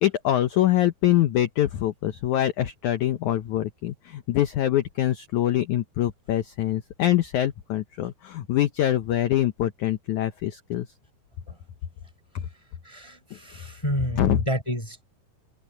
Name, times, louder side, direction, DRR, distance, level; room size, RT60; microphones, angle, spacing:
voice 1, 0.0-10.9 14.2-14.4, left 13 dB, 80° left, 1.7 m, -24 dB
voice 2, 12.8-15.0, equal, 5° left, 5.1 m, -30 dB
omnidirectional pair, 4.7 m